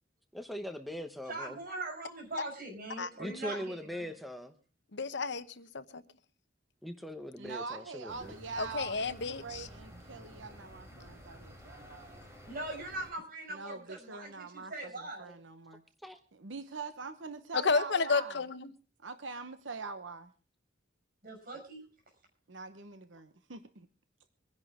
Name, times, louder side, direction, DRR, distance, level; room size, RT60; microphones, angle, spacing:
voice 1, 0.3-1.6 3.2-4.5 6.8-8.3 16.0-16.2, equal, ahead, 0.9 m, -41 dB
voice 2, 1.3-4.1 12.5-15.3 21.2-21.8, right 2 dB, 50° right, 6.1 m, -41 dB
voice 3, 4.9-6.0 8.6-9.7 17.5-18.7, left 4 dB, 65° left, 1.0 m, -31 dB
voice 4, 7.4-12.1 13.5-15.8 16.3-18.4 19.0-20.3 21.5-21.6 22.5-23.9, right 4 dB, 80° right, 1.1 m, -44 dB
sound 1, 8.1-13.1, equal, 15° right, 4.0 m, -52 dB
24.5 x 10.5 x 3.6 m
head